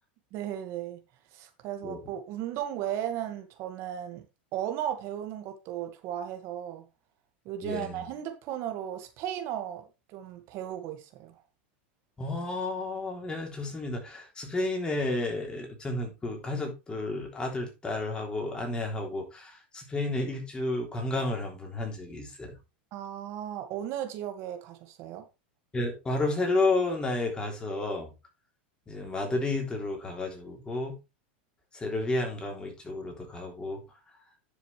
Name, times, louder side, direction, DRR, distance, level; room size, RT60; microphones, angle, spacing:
voice 1, 0.3-1.0 1.3-4.2 4.5-6.8 7.5-11.3 22.9-25.2, right 11 dB, 50° right, 1.9 m, -35 dB
voice 2, 7.6-8.0 12.2-22.6 25.7-28.1 28.9-31.0 31.7-33.8, left 2 dB, 15° left, 3.3 m, -31 dB
10.5 x 6.8 x 3.3 m
supercardioid pair, 125°, 6 cm